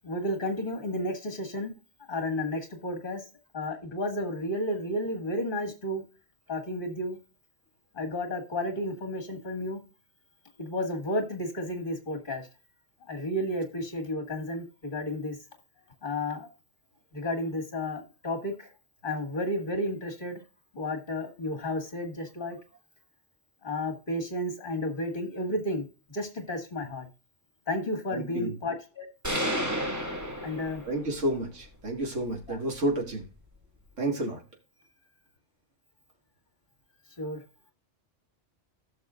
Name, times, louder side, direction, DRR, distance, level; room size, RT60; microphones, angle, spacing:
voice 1, 0.0-1.7 2.1-3.2 3.5-6.0 6.5-7.2 7.9-9.8 10.6-12.5 13.1-15.4 16.0-16.5 17.1-18.7 19.0-20.4 20.7-22.6 23.6-27.1 27.7-29.1 30.4-30.8 32.5-32.6 37.2-37.4, left 1 dB, 45° left, 5 dB, 2.1 m, -32 dB
voice 2, 28.1-28.5 30.9-33.3 34.0-34.4, right 1 dB, 90° right, 1 dB, 2.4 m, -30 dB
sound 1, 29.2-31.2, equal, 15° right, 2.2 m, -31 dB
15.5 x 6.3 x 2.5 m, 0.33 s
omnidirectional pair, 1.2 m